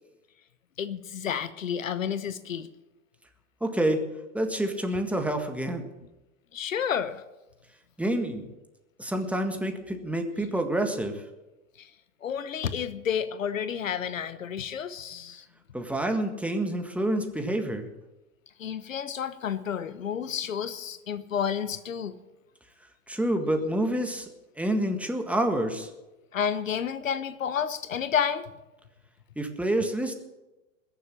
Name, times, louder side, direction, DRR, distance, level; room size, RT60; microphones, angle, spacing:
voice 1, 0.8-2.7 6.5-7.2 11.8-11.9 12.2-15.4 18.6-22.1 26.3-28.5, left 8 dB, 80° left, 14 dB, 1.0 m, -30 dB
voice 2, 3.6-5.9 8.0-8.5 9.0-11.2 15.7-17.8 23.1-24.3 24.6-25.9 29.4-30.1, right 1 dB, 5° right, 4 dB, 1.7 m, -28 dB
21.0 x 7.5 x 7.4 m, 1.0 s
hypercardioid pair, 105°, 39 cm